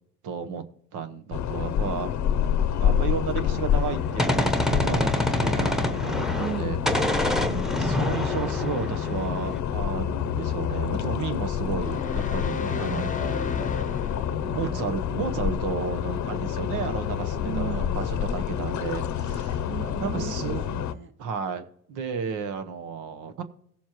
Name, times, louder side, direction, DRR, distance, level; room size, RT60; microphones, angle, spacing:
voice 1, 0.2-0.6 0.9-2.1 2.8-6.8 7.8-13.1 14.5-19.7 20.0-20.6 21.2-23.4, right 6 dB, 90° right, 9 dB, 1.1 m, -33 dB
sound 1, 1.3-20.9, left 9 dB, 70° left, 0.7 m, -28 dB
Gunshot gunfire, 3.7-6.6 6.9-9.6, left 1 dB, ahead, 1.0 m, -27 dB
voice 2, 6.4-6.8 7.4-7.7 12.5-15.0 17.4-18.1 19.7-21.1, right 7 dB, 40° right, 8 dB, 1.3 m, -37 dB
sound 2, 11.8-14.6, left 5 dB, 25° left, 0.7 m, -33 dB
16.5 x 7.2 x 3.0 m, 0.68 s
cardioid pair, 90°, 30 cm